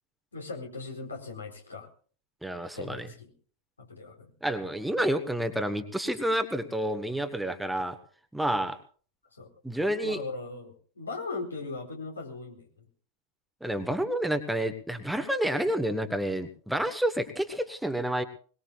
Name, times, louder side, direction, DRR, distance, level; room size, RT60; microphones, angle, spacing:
voice 1, 0.3-1.9 2.8-3.3 3.8-4.3 9.4-9.5 10.0-12.8, left 3 dB, 75° left, 2 dB, 4.3 m, -39 dB
voice 2, 2.4-3.1 4.4-8.0 8.3-8.8 9.6-10.2 13.6-18.2, right 1 dB, ahead, 8 dB, 1.6 m, -29 dB
22.5 x 20.5 x 2.5 m, 0.42 s
figure-of-eight pair, 90°, 0 cm